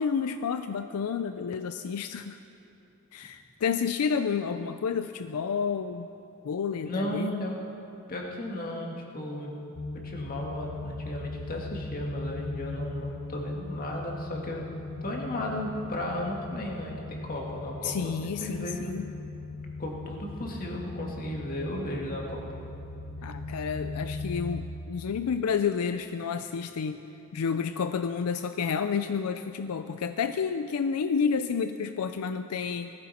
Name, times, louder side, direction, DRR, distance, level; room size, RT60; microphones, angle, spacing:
voice 1, 0.0-2.4 3.1-6.1 6.4-7.5 17.8-19.1 23.2-27.0 27.3-32.9, left 6 dB, 80° left, 9 dB, 0.4 m, -30 dB
voice 2, 6.8-7.6 8.1-9.5 10.0-14.6 15.0-18.9 19.8-22.4, left 1 dB, 40° left, -1 dB, 2.0 m, -34 dB
D phase drone, 9.8-24.6, left 3 dB, 60° left, 0.8 m, -39 dB
19.5 x 14.5 x 4.3 m, 2.8 s
head